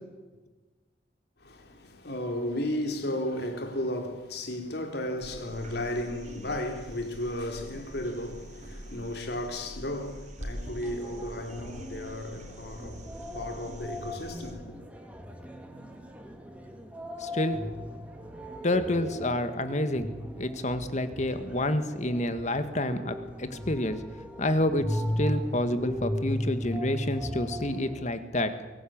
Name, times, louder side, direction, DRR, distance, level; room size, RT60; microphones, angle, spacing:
voice 1, 1.4-14.8, left 1 dB, 60° left, 3.5 m, -34 dB
sound 1, 5.2-14.5 16.6-16.7, equal, 40° right, 3.7 m, -45 dB
sound 2, 10.8-28.0, equal, 10° right, 2.7 m, -37 dB
voice 2, 17.2-17.6 18.6-24.0 24.4-28.5, left 1 dB, 40° left, 1.8 m, -29 dB
23.0 x 18.0 x 8.8 m
head